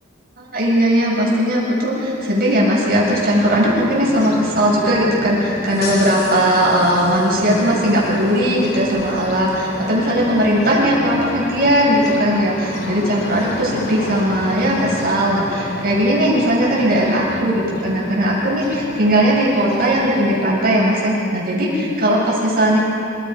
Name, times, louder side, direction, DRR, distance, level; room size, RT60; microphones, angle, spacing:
voice 1, 0.4-22.8, equal, 45° right, -5 dB, 6.9 m, -18 dB
sound 1, 2.7-20.7, left 1 dB, 50° left, 2.9 m, -32 dB
29.0 x 19.5 x 5.3 m, 2.7 s
head